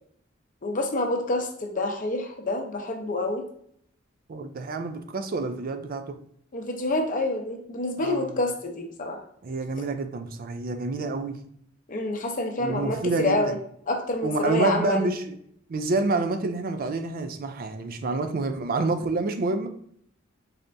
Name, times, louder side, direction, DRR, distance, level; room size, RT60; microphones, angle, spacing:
voice 1, 0.6-3.4 6.5-9.2 11.9-13.6 13.9-15.1, left 2 dB, 40° left, 3 dB, 0.6 m, -27 dB
voice 2, 4.3-6.2 8.0-8.3 9.4-11.4 12.6-13.5 14.2-15.4 15.7-19.7, right 3 dB, 45° right, 8 dB, 0.4 m, -28 dB
4.2 x 3.3 x 2.6 m, 0.66 s
head